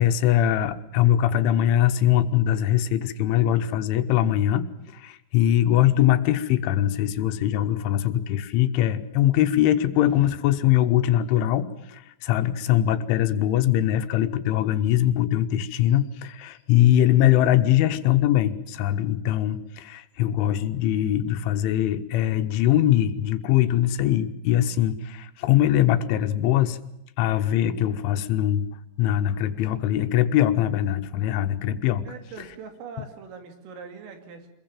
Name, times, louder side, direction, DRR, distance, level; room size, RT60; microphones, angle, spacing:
voice 1, 0.0-26.8 27.2-28.7 29.0-32.1, left 12 dB, 75° left, 9 dB, 3.4 m, -22 dB
voice 2, 32.1-34.5, right 5 dB, 80° right, 6 dB, 5.3 m, -41 dB
25.5 x 21.5 x 7.5 m, 0.81 s
omnidirectional pair, 5.7 m